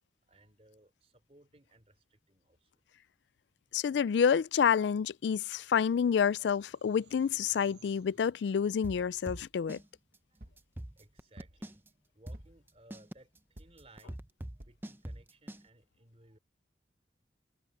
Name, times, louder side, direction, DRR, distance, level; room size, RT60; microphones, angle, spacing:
voice 1, 0.3-2.7 10.3-10.5 11.0-11.8 12.1-14.2 14.6-16.4, right 1 dB, 35° right, 3.3 m, -61 dB
voice 2, 3.7-9.8, left 7 dB, 85° left, 0.3 m, -28 dB
sound 1, 4.9-10.1, right 5 dB, 85° right, 7.9 m, -64 dB
sound 2, 8.8-9.8 10.1-10.2 10.6-11.9 12.3-15.6, right 1 dB, 10° right, 0.6 m, -43 dB
sound 3, 9.3-9.6 10.4-10.7 11.4-11.8 12.3-12.7 13.6-13.9 14.6-14.9 15.5-15.6 15.8-15.9, right 1 dB, 50° right, 1.4 m, -54 dB
head